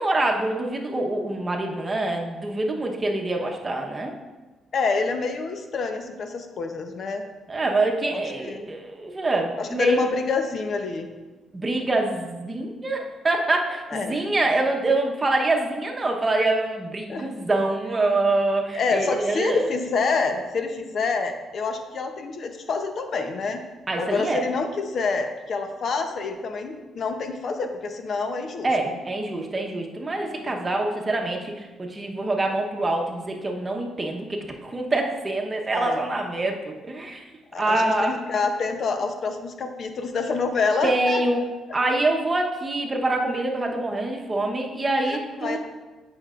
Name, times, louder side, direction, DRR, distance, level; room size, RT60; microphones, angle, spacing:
voice 1, 0.0-4.1 7.5-10.0 11.5-19.7 23.9-24.4 28.6-37.2 37.6-38.2 40.8-41.4 41.7-45.6, right 2 dB, 25° right, 1 dB, 1.0 m, -25 dB
voice 2, 4.7-7.3 8.1-8.7 9.6-11.1 13.9-14.3 17.1-17.3 18.7-23.6 24.0-28.7 30.3-30.5 35.7-36.0 37.5-41.2 45.0-45.6, left 4 dB, 55° left, 6 dB, 0.8 m, -27 dB
8.8 x 6.0 x 2.5 m, 1.2 s
cardioid pair, 90°, 0 cm